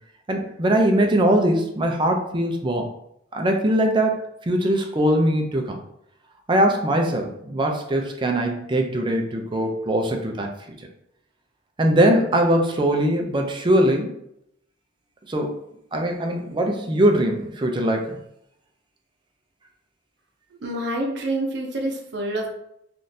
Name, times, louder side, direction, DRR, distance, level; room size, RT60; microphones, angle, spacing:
voice 1, 0.3-2.9 3.3-5.8 6.5-10.5 11.8-14.2 15.3-15.6 15.9-18.2, right 1 dB, 25° right, 3 dB, 0.4 m, -21 dB
voice 2, 20.6-22.5, right 1 dB, 65° right, 1 dB, 0.7 m, -27 dB
3.6 x 2.4 x 2.6 m, 0.78 s
head